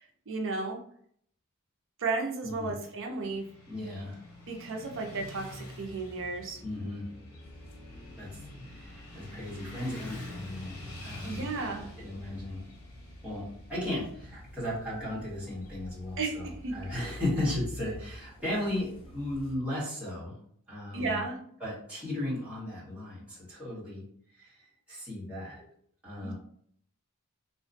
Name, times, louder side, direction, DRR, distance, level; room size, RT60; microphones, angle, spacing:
voice 1, 0.3-0.8 2.0-3.5 4.5-6.6 11.2-11.9 16.2-16.8 20.9-21.4 26.2-26.3, right 3 dB, 60° right, 2 dB, 0.5 m, -33 dB
voice 2, 2.4-2.8 3.7-4.2 6.6-7.1 8.2-8.3 8.6-11.5 11.8-12.6 13.2-20.3 20.7-21.2 21.6-24.0 24.4-25.6 26.0-26.3, left 1 dB, 5° right, -9 dB, 1.3 m, -36 dB
Motorcycle / Traffic noise roadway noise, 3.2-17.3, left 1 dB, 70° left, 0.9 m, -47 dB
sound 1, 7.4-19.6, left 1 dB, 25° left, 0.4 m, -49 dB
2.8 x 2.3 x 2.6 m, 0.63 s
head